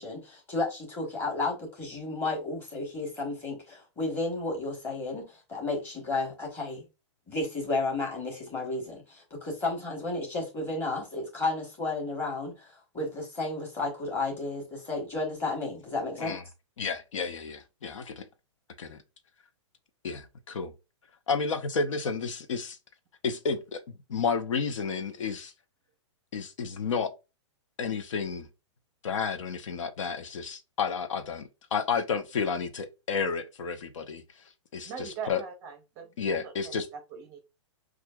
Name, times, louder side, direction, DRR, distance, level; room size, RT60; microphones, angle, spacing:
voice 1, 0.0-6.8 7.3-16.4, left 2 dB, 15° left, 1.3 m, -32 dB
voice 2, 16.8-18.3 18.8-19.0 20.0-20.7 21.3-22.8 23.2-23.8 24.1-25.5 26.3-27.1 27.8-28.5 29.0-34.2 34.7-35.4 36.2-36.9, left 5 dB, 85° left, 0.9 m, -31 dB
voice 3, 34.8-37.4, right 6 dB, 20° right, 0.6 m, -41 dB
6.2 x 2.5 x 2.3 m
hypercardioid pair, 170°, 16 cm